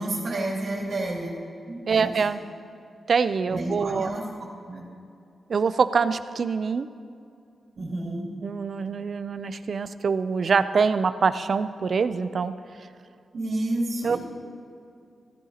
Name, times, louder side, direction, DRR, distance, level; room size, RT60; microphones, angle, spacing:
voice 1, 0.0-1.4 1.7-2.2 3.5-4.3 4.7-4.8 7.8-8.3 13.3-14.2, right 1 dB, 70° right, -7 dB, 2.7 m, -30 dB
voice 2, 1.9-2.4 3.1-4.1 5.5-6.9 8.4-12.5 14.0-14.2, right 5 dB, 50° right, 13 dB, 0.4 m, -24 dB
15.5 x 14.5 x 2.9 m, 2.5 s
wide cardioid pair, 125°, 0 cm